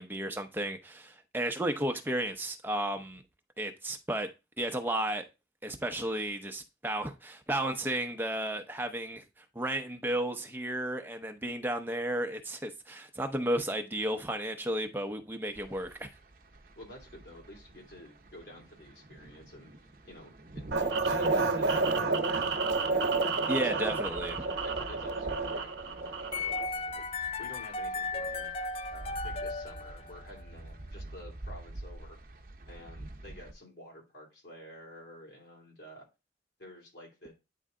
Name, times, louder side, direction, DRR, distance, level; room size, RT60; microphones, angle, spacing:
voice 1, 0.0-3.2 3.6-4.3 4.6-5.2 5.6-9.2 9.5-16.1 23.5-24.4, right 1 dB, 10° right, 0.7 m, -33 dB
sound 1, 15.5-33.5, right 1 dB, 50° right, 0.7 m, -48 dB
voice 2, 16.8-19.7 20.0-23.2 23.6-23.9 24.3-27.0 27.4-28.5 28.9-32.2 32.7-36.1 36.6-37.3, left 1 dB, 85° left, 2.7 m, -50 dB
sound 2, 20.7-26.7, right 3 dB, 80° right, 0.8 m, -30 dB
sound 3, 26.3-30.4, left 3 dB, 30° left, 0.3 m, -35 dB
9.2 x 3.3 x 3.7 m
head